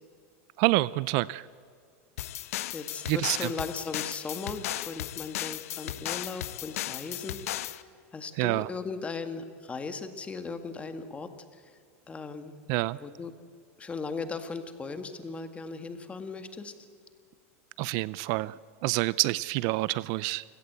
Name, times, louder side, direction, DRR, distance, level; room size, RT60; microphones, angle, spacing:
voice 1, 0.6-1.5 3.1-3.5 8.4-8.7 12.7-13.0 17.8-20.4, right 20 dB, 55° right, 20 dB, 0.5 m, -27 dB
sound 1, 2.2-7.8, left 13 dB, 85° left, 0.9 m, -36 dB
voice 2, 2.7-7.4 8.1-11.6 12.1-12.6 13.0-13.3 13.8-16.7, left 4 dB, 15° left, 9 dB, 1.9 m, -37 dB
29.0 x 17.0 x 8.2 m, 2.3 s
supercardioid pair, 135°, 8 cm